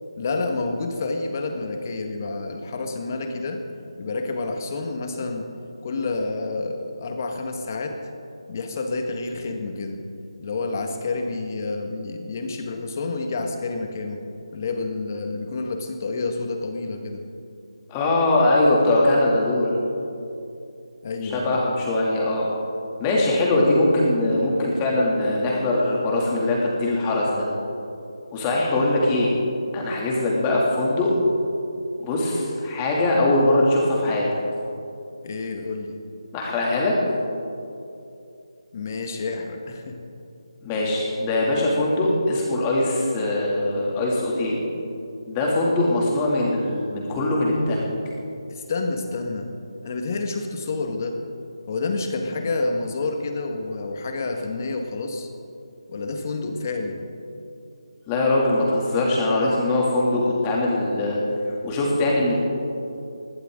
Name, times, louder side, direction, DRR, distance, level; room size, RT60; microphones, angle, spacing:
voice 1, 0.2-3.6 4.0-5.5 5.8-8.0 8.5-10.0 10.4-14.2 14.5-17.2 21.0-21.6 35.2-36.0 38.7-40.0 48.5-49.5 49.8-51.2 51.7-55.3 55.9-57.0, left 3 dB, 35° left, 4 dB, 1.7 m, -29 dB
voice 2, 17.9-19.8 21.2-22.5 23.0-27.4 28.3-29.3 29.7-31.1 32.0-34.3 36.3-36.9 40.6-44.6 45.3-47.9 58.1-61.2 61.6-62.4, left 2 dB, 15° left, -3 dB, 2.7 m, -21 dB
20.5 x 16.5 x 3.9 m, 2.6 s
figure-of-eight pair, 165°, 3 cm